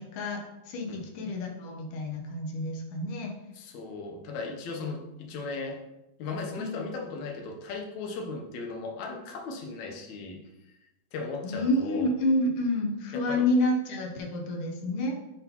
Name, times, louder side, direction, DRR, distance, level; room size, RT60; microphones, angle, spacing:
voice 1, 0.0-3.3 6.6-6.8 11.4-15.2, left 1 dB, 85° left, 2 dB, 2.5 m, -29 dB
voice 2, 3.5-5.8 6.2-10.4 10.7-10.8 11.1-12.1 13.1-13.4, left 4 dB, 70° left, 2 dB, 2.2 m, -37 dB
9.1 x 4.0 x 3.0 m, 0.94 s
omnidirectional pair, 3.5 m